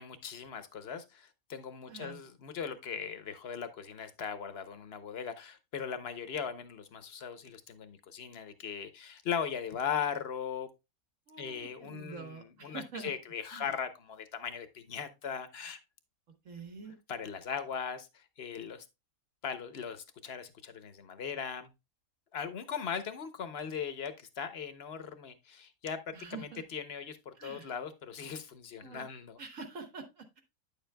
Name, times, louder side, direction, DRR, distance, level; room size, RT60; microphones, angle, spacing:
voice 1, 0.0-10.7 11.4-15.8 17.1-18.8 19.4-21.7 22.3-26.0 26.3-29.4, left 7 dB, 50° left, 0.9 m, -39 dB
voice 2, 1.9-2.2 11.3-13.1 13.5-13.7 16.4-17.0 26.1-26.6 27.4-27.7 28.8-29.1 29.4-30.4, right 4 dB, 60° right, 1.5 m, -46 dB
9.5 x 7.0 x 2.2 m
omnidirectional pair, 1.6 m